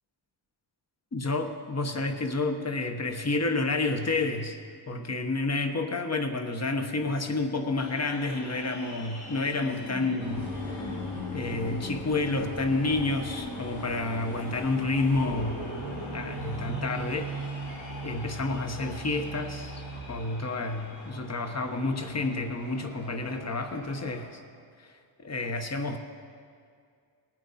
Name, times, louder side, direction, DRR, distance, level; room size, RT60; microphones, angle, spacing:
voice 1, 1.1-4.6 4.9-11.0 11.3-15.6 16.1-17.3 18.0-19.8 20.1-24.4 24.8-24.9 25.2-26.0, left 3 dB, 35° left, 6 dB, 1.1 m, -30 dB
sound 1, 7.8-24.3, left 3 dB, 55° left, 3.2 m, -42 dB
sound 2, 10.2-20.0, right 1 dB, 90° left, 3.5 m, -38 dB
18.5 x 8.9 x 4.2 m, 2.2 s
cardioid pair, 90°, 47 cm